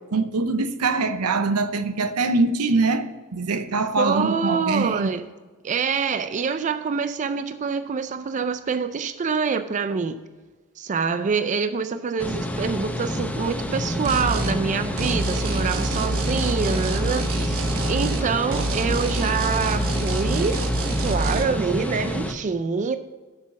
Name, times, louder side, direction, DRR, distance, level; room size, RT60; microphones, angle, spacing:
voice 1, 0.1-3.1 3.3-5.2, right 3 dB, 80° right, 0.7 m, -23 dB
voice 2, 4.0-5.2 5.6-10.2 10.8-20.6 21.0-23.0, right 5 dB, 35° right, 0.4 m, -26 dB
sound 1, 12.2-22.3, equal, 5° left, 0.6 m, -28 dB
sound 2, 14.1-14.6 15.0-18.3 18.5-21.4, right 2 dB, 65° right, 1.0 m, -26 dB
8.1 x 6.3 x 6.0 m
head